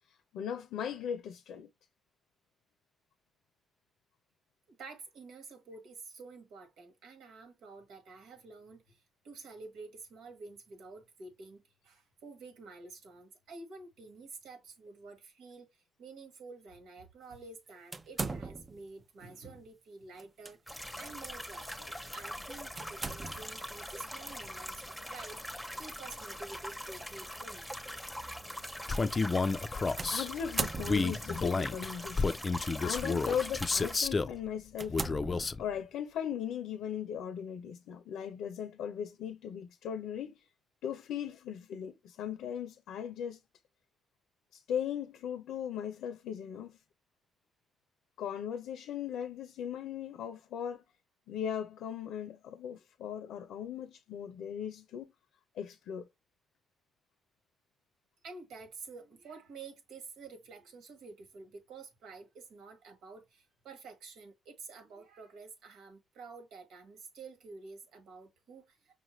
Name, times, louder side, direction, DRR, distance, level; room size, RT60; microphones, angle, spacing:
voice 1, 0.3-1.7 30.1-32.4 32.8-35.0 35.6-40.4 40.8-43.4 44.5-46.8 48.2-50.8 51.3-55.1 55.6-56.1, left 8 dB, 80° left, 0.6 m, -38 dB
voice 2, 4.7-27.7 58.2-68.9, right 4 dB, 80° right, 1.5 m, -50 dB
sound 1, 17.9-18.9 20.2-20.5 21.0-21.1 22.8-23.6 25.7-26.0 26.8-26.9 30.0-31.4 32.3-32.7 33.3-33.5 34.0-34.1 34.7-36.0, right 3 dB, 25° right, 0.5 m, -39 dB
sound 2, 20.7-34.0, equal, ahead, 0.9 m, -42 dB
Male speech man speaking, 28.9-30.3 30.8-34.4 34.9-35.6, left 4 dB, 30° left, 0.4 m, -31 dB
5.5 x 2.5 x 3.1 m
cardioid pair, 90°, 0 cm